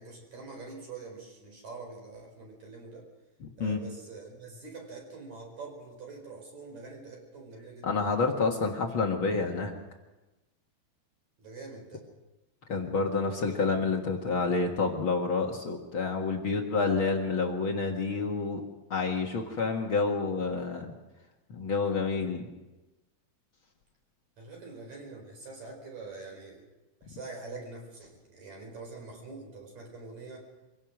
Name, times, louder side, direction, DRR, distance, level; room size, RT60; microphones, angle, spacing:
voice 1, 0.0-3.1 3.6-8.0 11.4-12.0 24.4-26.6 27.0-30.5, right 3 dB, 40° right, 1 dB, 6.0 m, -45 dB
voice 2, 3.4-3.8 7.8-9.7 12.7-18.6 18.9-20.9 21.5-22.4, left 4 dB, 60° left, 1 dB, 1.3 m, -28 dB
25.5 x 17.0 x 6.2 m, 1.1 s
omnidirectional pair, 4.9 m